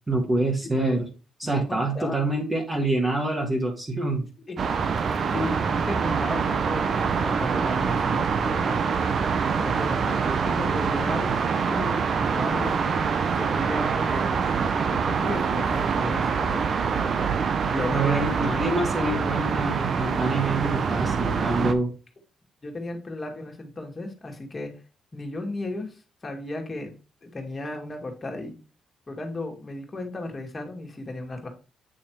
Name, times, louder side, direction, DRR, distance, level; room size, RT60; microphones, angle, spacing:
voice 1, 0.1-1.1 1.4-4.3 17.9-21.9, right 2 dB, 20° right, 1 dB, 1.6 m, -26 dB
voice 2, 1.4-2.2 4.5-4.6 5.3-8.8 9.6-12.9 13.3-14.3 14.9-16.7 17.7-18.2 22.6-24.7 25.1-26.9 27.2-28.5 29.1-31.5, left 2 dB, 30° left, 3 dB, 2.0 m, -34 dB
sound 1, 4.6-21.7, right 6 dB, 55° right, 0.8 m, -25 dB
8.9 x 3.2 x 4.5 m, 0.33 s
cardioid pair, 90°, 0 cm